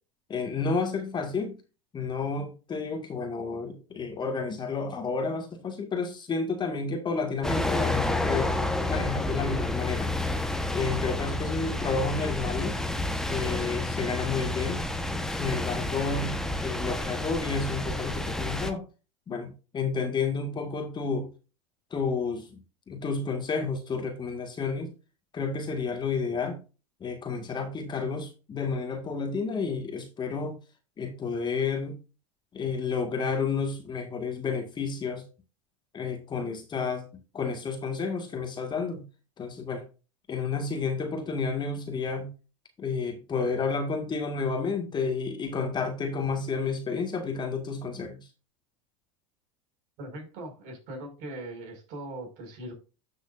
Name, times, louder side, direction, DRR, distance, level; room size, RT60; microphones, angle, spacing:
voice 1, 0.3-1.6 1.9-8.5 8.9-10.1 10.7-12.8 13.3-14.8 15.3-18.8 19.3-21.3 21.9-22.5 22.9-24.9 25.3-26.6 27.0-30.6 31.0-32.0 32.5-35.2 35.9-37.0 37.3-39.0 39.4-39.8 40.3-42.3 42.8-48.3, left 4 dB, 30° left, 1.8 m, -31 dB
sound 1, 7.4-18.7, left 2 dB, 5° left, 1.2 m, -30 dB
voice 2, 50.0-52.7, right 1 dB, 55° right, 5.6 m, -40 dB
12.0 x 6.5 x 2.6 m
hypercardioid pair, 95°, 16 cm